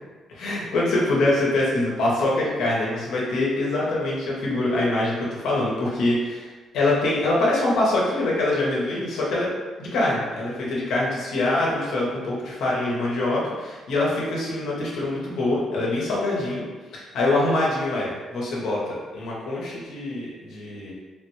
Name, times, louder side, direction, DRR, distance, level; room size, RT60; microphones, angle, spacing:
voice 1, 0.3-6.5 6.7-9.5 9.8-16.6 16.9-20.9, left 2 dB, 80° left, -5 dB, 0.8 m, -24 dB
3.3 x 2.2 x 3.1 m, 1.3 s
cardioid pair, 90°, 0 cm